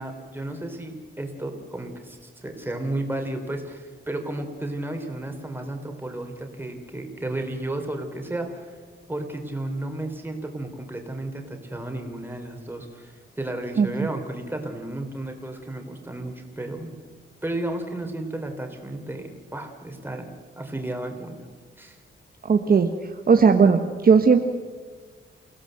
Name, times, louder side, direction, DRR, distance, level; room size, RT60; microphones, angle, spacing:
voice 1, 0.0-8.7 9.1-16.9 17.4-20.3 20.6-21.3 21.8-22.0, right 1 dB, 10° right, 3 dB, 3.8 m, -33 dB
voice 2, 13.8-14.1 22.4-22.9 23.3-24.4, right 5 dB, 45° right, 5 dB, 1.3 m, -17 dB
29.0 x 16.5 x 7.9 m, 1.5 s
wide cardioid pair, 115°, 21 cm